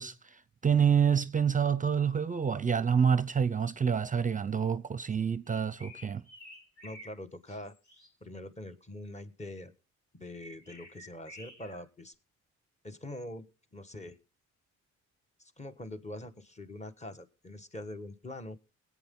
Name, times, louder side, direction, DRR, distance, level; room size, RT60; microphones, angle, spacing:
voice 1, 0.0-6.2, right 7 dB, 25° right, 0.6 m, -27 dB
sound 1, 5.5-7.1 7.5-8.1 10.3-11.8, left 1 dB, 80° left, 7.9 m, -51 dB
voice 2, 6.8-7.7 8.2-9.7 10.1-12.1 12.8-13.5 13.7-14.2 15.4-18.6, left 1 dB, 20° left, 1.5 m, -44 dB
21.5 x 8.5 x 3.7 m
cardioid pair, 90°, 30 cm